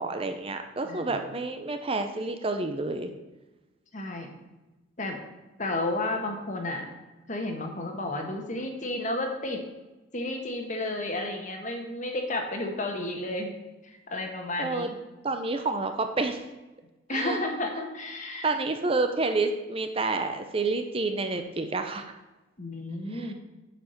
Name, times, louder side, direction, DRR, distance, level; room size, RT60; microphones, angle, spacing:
voice 1, 0.0-3.1 14.6-14.9 15.2-16.4 17.1-17.4 18.4-22.0 23.1-23.3, right 3 dB, 30° right, 6 dB, 0.6 m, -29 dB
voice 2, 0.8-1.2 3.9-4.3 5.0-5.2 5.6-6.9 7.3-9.6 10.1-13.6 13.8-15.0 17.1-18.5 22.6-23.3, left 2 dB, 40° left, 3 dB, 1.4 m, -32 dB
8.7 x 5.0 x 6.5 m, 1.1 s
head